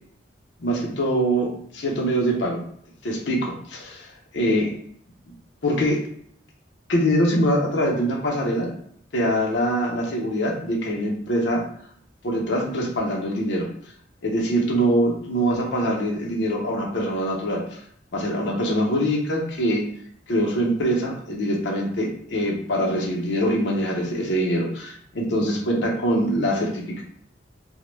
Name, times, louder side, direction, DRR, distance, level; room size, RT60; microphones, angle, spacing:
voice 1, 0.6-2.6 3.0-3.5 3.9-4.1 4.3-4.7 5.6-6.0 6.9-8.7 9.1-11.6 12.2-13.7 14.2-17.8 18.1-19.9 20.3-27.0, equal, 75° left, -1 dB, 0.6 m, -23 dB
2.1 x 2.0 x 3.1 m, 0.64 s
head